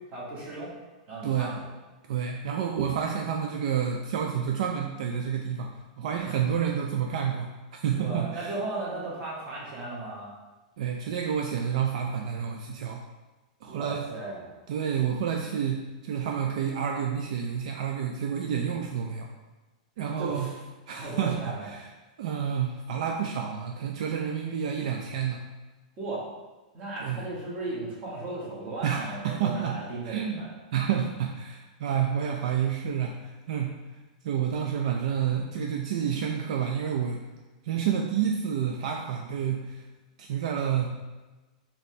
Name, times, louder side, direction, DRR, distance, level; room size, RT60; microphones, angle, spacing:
voice 1, 0.1-0.7 1.1-1.7 7.9-10.3 13.6-14.5 20.0-20.6 20.9-21.7 26.0-26.3 26.7-30.5, right 2 dB, 30° right, -6 dB, 1.3 m, -36 dB
voice 2, 2.1-5.7 6.0-7.5 7.8-8.5 10.8-13.0 13.6-14.0 14.7-19.3 20.0-20.5 20.9-21.9 22.2-25.4 27.0-27.2 28.8-29.8 30.1-30.4 30.7-33.8 34.2-37.2 37.6-39.8 40.2-40.9, right 8 dB, 65° right, 2 dB, 0.3 m, -29 dB
4.2 x 2.8 x 3.1 m, 1.2 s
supercardioid pair, 155°, 4 cm